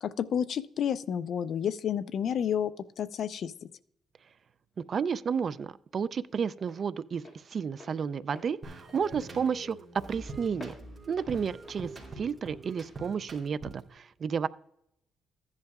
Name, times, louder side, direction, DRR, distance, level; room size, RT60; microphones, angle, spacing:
voice 1, 0.0-3.7, left 8 dB, 50° left, 14 dB, 0.4 m, -31 dB
Walk footsteps, 4.4-13.1, left 2 dB, 25° left, 2.2 m, -53 dB
voice 2, 4.8-7.2 7.5-9.8 10.1-10.7 11.1-11.9 12.2-14.5, right 6 dB, 35° right, 15 dB, 0.3 m, -31 dB
sound 1, 8.6-14.0, right 2 dB, 20° right, 3.1 m, -45 dB
15.0 x 10.5 x 2.3 m, 0.76 s
cardioid pair, 165°, 0 cm